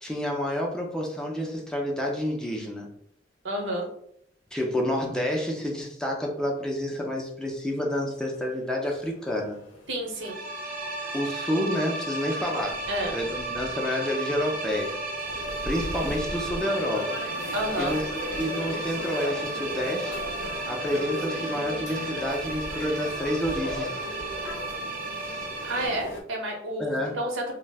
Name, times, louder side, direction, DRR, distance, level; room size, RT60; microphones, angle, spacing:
voice 1, 0.0-2.9 4.5-9.6 11.1-15.0 15.6-17.2 17.8-20.2 20.7-24.1 25.2-25.5 26.8-27.2, equal, 5° left, 0 dB, 0.4 m, -29 dB
voice 2, 3.4-3.9 9.9-10.4 12.9-13.1 17.5-18.0 25.6-27.5, right 1 dB, 85° right, 0 dB, 0.8 m, -30 dB
sound 1, 8.2-26.2, left 2 dB, 70° left, 0.6 m, -38 dB
sound 2, 10.1-25.9, right 3 dB, 50° right, 0.6 m, -34 dB
2.4 x 2.0 x 3.3 m, 0.69 s
head